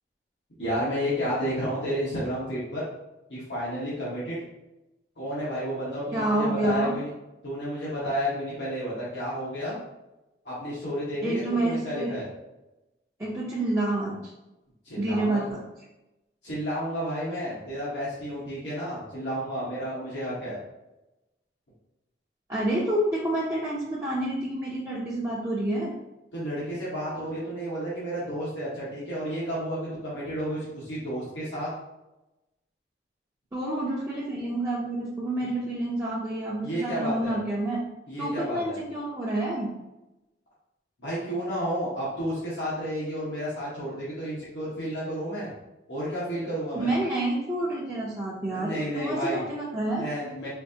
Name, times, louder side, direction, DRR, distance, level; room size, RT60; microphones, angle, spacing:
voice 1, 0.6-2.8 3.3-4.4 5.2-7.1 7.4-9.8 10.4-12.3 14.8-15.4 16.4-20.6 26.3-31.7 35.4-35.5 36.6-37.4 38.1-38.8 41.0-45.5 45.9-46.9 48.5-49.4 50.0-50.5, equal, 90° left, -9 dB, 1.3 m, -31 dB
voice 2, 6.1-6.9 11.2-12.1 13.2-14.2 15.0-15.6 22.5-25.9 33.5-37.8 38.2-39.7 46.8-50.1, right 1 dB, 15° right, -8 dB, 0.5 m, -28 dB
4.3 x 2.6 x 2.7 m, 0.97 s
head